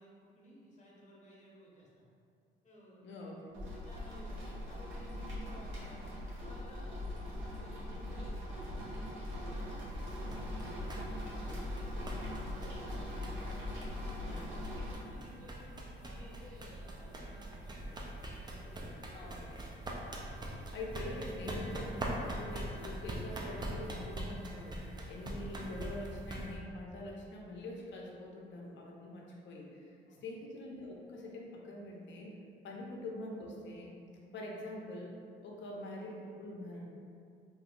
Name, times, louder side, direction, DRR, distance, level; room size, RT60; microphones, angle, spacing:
voice 1, 0.0-2.0 2.6-3.0 3.8-6.0 6.4-12.0 12.3-13.3 13.7-14.2 14.5-19.5 30.1-30.2 32.7-32.8, equal, 35° left, -5 dB, 0.9 m, -57 dB
voice 2, 3.0-3.5 14.2-14.5 19.1-19.5 20.7-32.3 32.6-33.9 34.3-35.1 35.4-37.0, left 1 dB, 65° left, -2 dB, 0.7 m, -44 dB
sound 1, 3.5-14.9, left 1 dB, 80° right, 1.0 m, -41 dB
sound 2, 9.9-26.5, right 1 dB, 20° right, 0.4 m, -43 dB
2.7 x 2.3 x 3.7 m, 2.4 s
cardioid pair, 90°, 20 cm